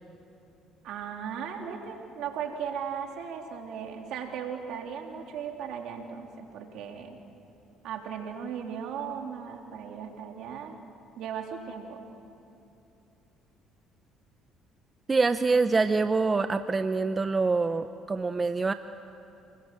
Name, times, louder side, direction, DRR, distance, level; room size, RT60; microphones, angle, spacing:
voice 1, 0.8-7.2 7.8-10.8 11.2-12.0, right 7 dB, 70° right, 2 dB, 3.4 m, -37 dB
voice 2, 15.1-18.7, right 4 dB, 25° right, 10 dB, 0.8 m, -25 dB
29.0 x 21.0 x 7.7 m, 2.8 s
supercardioid pair, 80°, 0 cm